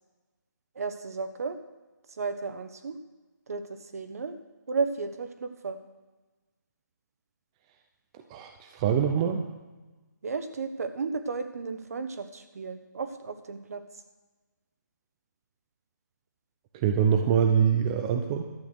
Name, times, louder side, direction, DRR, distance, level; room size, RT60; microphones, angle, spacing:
voice 1, 0.7-1.6 2.2-3.0 3.5-4.4 4.7-5.8 10.2-13.8, right 4 dB, 50° right, 9 dB, 1.4 m, -33 dB
voice 2, 8.3-9.4 16.8-18.4, right 8 dB, 20° right, 5 dB, 0.7 m, -24 dB
12.5 x 8.5 x 6.5 m, 1.2 s
figure-of-eight pair, 155°, 10 cm